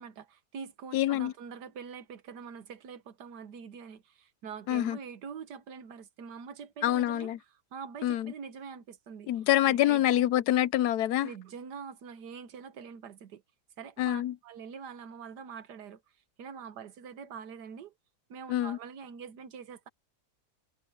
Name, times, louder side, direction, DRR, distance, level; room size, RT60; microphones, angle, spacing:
voice 1, 0.0-7.3 7.7-9.3 9.7-10.3 11.2-13.4 13.8-16.0 16.4-17.9 18.3-19.9, right 6 dB, 85° right, 1.7 m, -44 dB
voice 2, 0.9-1.3 4.7-5.0 6.8-7.4 8.0-8.3 9.3-11.3 14.0-14.3 18.5-18.8, left 13 dB, 80° left, 1.1 m, -26 dB
omnidirectional pair, 1.7 m